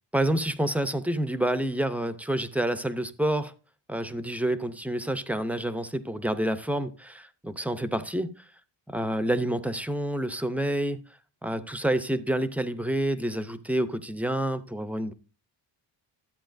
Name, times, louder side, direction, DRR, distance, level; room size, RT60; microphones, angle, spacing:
voice 1, 0.1-3.5 3.9-8.3 8.9-11.0 11.4-15.1, right 1 dB, 5° right, 0.5 m, -28 dB
13.0 x 8.4 x 2.5 m
cardioid pair, 160°, 45 cm